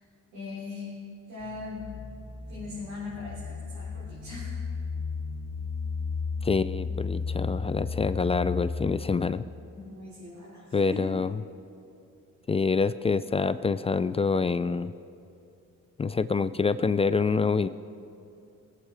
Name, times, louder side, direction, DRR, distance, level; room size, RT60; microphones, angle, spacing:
voice 1, 0.3-0.9 1.3-1.8 2.5-4.5 9.7-11.1, left 3 dB, 80° right, -8 dB, 4.0 m, -40 dB
sound 1, 1.4-9.2, left 4 dB, 40° left, 2.4 m, -34 dB
voice 2, 6.4-9.4 10.7-11.4 12.5-14.9 16.0-17.7, left 4 dB, 20° left, 13 dB, 0.3 m, -26 dB
21.0 x 8.2 x 4.8 m, 2.5 s
cardioid pair, 90°, 30 cm